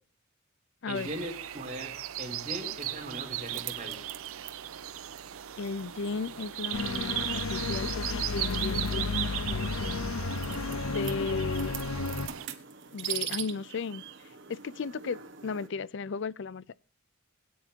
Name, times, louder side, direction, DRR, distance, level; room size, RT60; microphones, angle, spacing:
voice 1, 0.9-4.0, right 1 dB, 35° right, 3.9 m, -39 dB
sound 1, 0.9-12.5, right 13 dB, 80° right, 0.6 m, -37 dB
sound 2, 2.8-15.7, right 9 dB, 55° right, 1.3 m, -44 dB
voice 2, 5.6-10.0 10.8-11.7 12.9-14.0 14.5-16.8, left 5 dB, 55° left, 0.5 m, -35 dB
sound 3, 6.7-12.3, left 3 dB, 75° left, 1.0 m, -32 dB
21.5 x 9.3 x 2.8 m
head